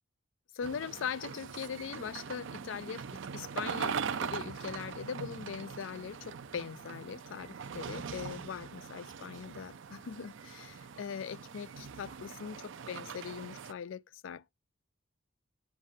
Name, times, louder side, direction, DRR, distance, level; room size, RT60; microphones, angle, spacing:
voice 1, 0.5-3.1 3.3-14.5, left 7 dB, 65° left, 0.4 m, -41 dB
sound 1, 0.6-13.7, right 6 dB, 65° right, 0.5 m, -41 dB
9.1 x 7.5 x 2.7 m
head